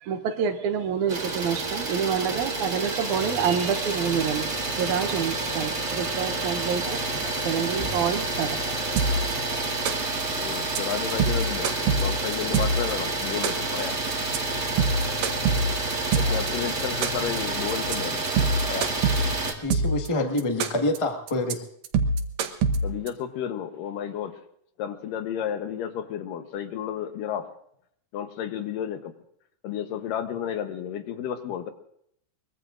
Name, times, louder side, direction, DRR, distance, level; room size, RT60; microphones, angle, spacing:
voice 1, 0.0-7.0 7.4-8.6, right 7 dB, 70° right, 2.2 m, -27 dB
Idling, 1.1-19.5, right 2 dB, 30° right, 1.6 m, -29 dB
sound 1, 9.0-9.3 9.6-10.2 10.5-10.8 11.1-12.9 13.2-13.8 14.1-14.4 14.7-16.5 16.8-17.4 17.7-18.0 18.3-20.1 20.4-21.0 21.3-21.5 21.8-23.1, right 3 dB, 85° right, 2.7 m, -24 dB
voice 2, 10.4-14.0 16.1-18.2 18.6-18.9 22.8-24.4 24.8-27.5 28.1-29.1 29.6-31.7, left 9 dB, 85° left, 2.7 m, -32 dB
voice 3, 19.6-21.6, left 1 dB, 30° left, 0.5 m, -26 dB
23.5 x 22.0 x 2.6 m
omnidirectional pair, 3.7 m